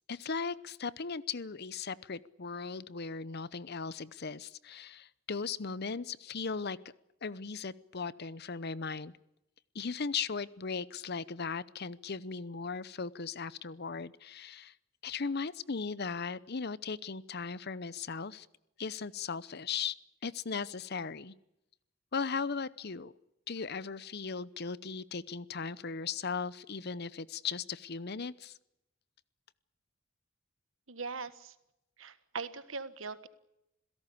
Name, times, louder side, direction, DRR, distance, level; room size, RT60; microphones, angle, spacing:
voice 1, 0.1-6.8 7.2-9.1 9.7-14.7 15.0-18.5 18.8-20.0 20.2-21.3 22.1-23.1 23.5-28.5, left 5 dB, 50° left, 19 dB, 0.8 m, -37 dB
voice 2, 30.9-31.5 32.0-33.3, right 4 dB, 75° right, 13 dB, 1.5 m, -40 dB
27.0 x 17.0 x 8.5 m, 0.86 s
head